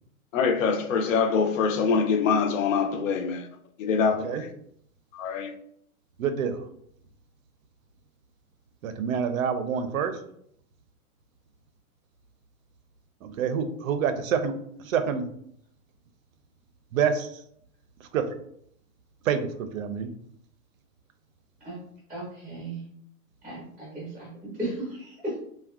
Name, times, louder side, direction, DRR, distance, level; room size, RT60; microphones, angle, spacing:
voice 1, 0.3-3.5 3.8-4.5 5.1-5.5, left 5 dB, 60° left, 0.6 m, -24 dB
voice 2, 4.0-4.4 6.2-6.6 8.8-10.1 13.2-14.5 14.8-15.3 16.9-17.3 18.0-18.2 19.3-20.1, right 7 dB, 65° right, 0.5 m, -27 dB
voice 3, 22.1-22.8 23.4-25.5, right 1 dB, 5° right, 0.6 m, -35 dB
3.6 x 2.2 x 2.3 m
hypercardioid pair, 160°, 45 cm